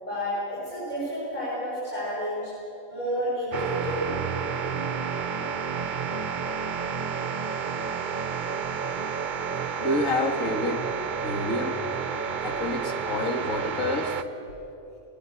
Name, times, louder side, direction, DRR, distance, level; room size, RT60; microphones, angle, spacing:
voice 1, 0.0-2.5 2.9-4.1, equal, 30° left, -9 dB, 6.8 m, -30 dB
sound 1, 3.5-14.2, right 6 dB, 45° right, 0.8 m, -30 dB
voice 2, 9.8-10.9 11.2-11.8 12.4-14.2, left 1 dB, 75° left, 4 dB, 2.2 m, -28 dB
20.5 x 20.0 x 8.4 m, 2.9 s
omnidirectional pair, 1.4 m